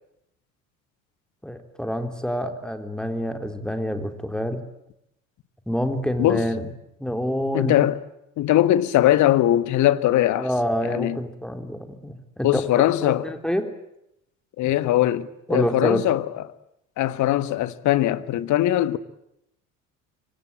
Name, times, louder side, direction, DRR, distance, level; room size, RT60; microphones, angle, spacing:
voice 1, 1.4-4.6 5.7-6.7 7.0-7.8 10.4-12.6 13.0-13.7 15.5-16.0, equal, ahead, 3.9 m, -27 dB
voice 2, 7.5-8.0 8.4-10.5 10.8-11.2 12.4-13.4 14.6-16.5 17.0-19.0, left 13 dB, 45° left, 1.6 m, -21 dB
26.5 x 25.0 x 8.9 m
figure-of-eight pair, 60°, 41 cm